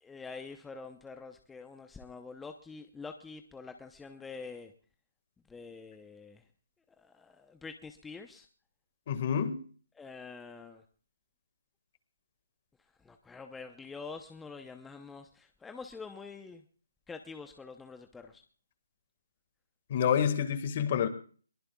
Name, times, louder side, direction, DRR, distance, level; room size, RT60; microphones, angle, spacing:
voice 1, 0.0-4.7 5.5-6.4 7.0-8.5 10.0-10.8 13.0-16.6 17.1-18.4, left 4 dB, 5° left, 6 dB, 0.8 m, -46 dB
voice 2, 9.1-9.6 19.9-21.1, left 8 dB, 40° left, 10 dB, 1.8 m, -28 dB
22.0 x 20.0 x 2.3 m, 0.42 s
hypercardioid pair, 155°, 0 cm